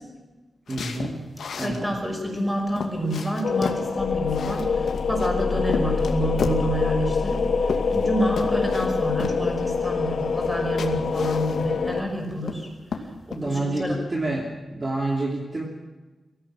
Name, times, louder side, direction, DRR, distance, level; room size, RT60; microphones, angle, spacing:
sound 1, 0.7-1.8 2.3-2.4 2.7-3.9 4.3-5.3 5.7-6.7 7.3-8.1 8.4-8.9 9.2-9.4 10.4-10.5 10.8-11.8 12.2-12.6 12.9-13.4, left 5 dB, 90° left, 2.4 m, -32 dB
voice 1, 0.7-1.2 1.6-2.0 13.3-15.6, right 2 dB, 25° right, -1 dB, 2.9 m, -28 dB
voice 2, 1.6-12.7 13.0-14.3, equal, ahead, 0 dB, 5.7 m, -29 dB
sound 2, 3.4-12.0, left 5 dB, 70° left, 1.8 m, -25 dB
23.5 x 16.0 x 7.5 m, 1.2 s
wide cardioid pair, 170°, 0 cm